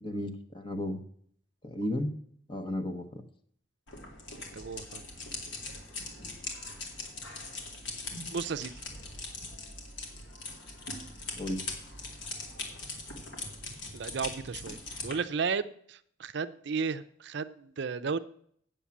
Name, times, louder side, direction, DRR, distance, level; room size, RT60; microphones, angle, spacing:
voice 1, 0.0-1.0 1.6-2.1 2.5-3.2 11.4-11.6, left 1 dB, 25° left, 6 dB, 1.1 m, -33 dB
sound 1, 3.9-15.1, left 3 dB, 75° left, 2.4 m, -41 dB
voice 2, 4.3-5.0 8.3-8.8 13.9-18.2, right 5 dB, 60° right, 12 dB, 0.5 m, -34 dB
8.7 x 7.3 x 7.1 m, 0.63 s
head